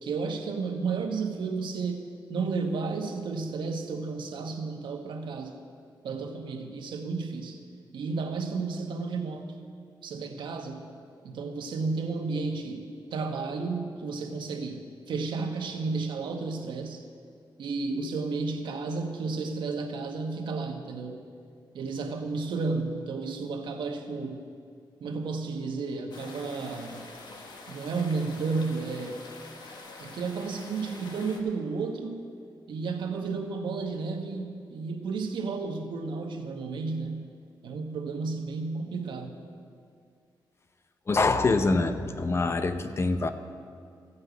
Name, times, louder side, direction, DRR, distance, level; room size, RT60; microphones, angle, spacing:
voice 1, 0.0-5.6 6.0-7.6 7.9-9.5 10.0-10.8 11.2-14.8 15.1-17.0 17.6-21.2 21.7-24.4 25.0-27.0 27.7-29.2 30.0-32.2 32.7-37.3 37.6-39.3, right 4 dB, 85° right, 4 dB, 1.2 m, -32 dB
sound 1, 26.1-31.4, left 3 dB, 70° left, 1.4 m, -46 dB
voice 2, 41.1-43.3, left 3 dB, 35° left, 9 dB, 0.7 m, -25 dB
15.0 x 5.5 x 8.2 m, 2.2 s
wide cardioid pair, 125°, 8 cm